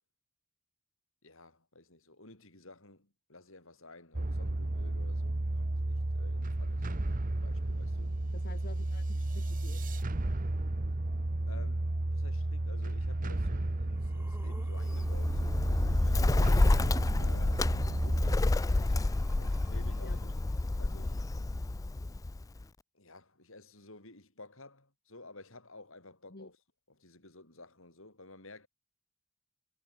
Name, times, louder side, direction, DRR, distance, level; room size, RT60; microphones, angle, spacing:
voice 1, 1.2-7.0 7.3-8.2 11.5-16.7 17.2-20.3 20.8-21.2 22.9-26.6 26.9-28.7, left 2 dB, 65° left, 7.8 m, -53 dB
sound 1, 4.1-18.4, right 2 dB, 40° right, 1.0 m, -33 dB
voice 2, 8.3-9.8 10.1-10.3 16.5-16.8 20.0-20.3 26.3-26.5, left 2 dB, 45° left, 1.6 m, -50 dB
sound 2, 13.0-13.1 13.6-16.4 17.6-21.5 22.5-22.6, right 1 dB, 10° right, 2.9 m, -58 dB
Bird, 14.8-22.6, left 2 dB, 15° left, 0.3 m, -29 dB
head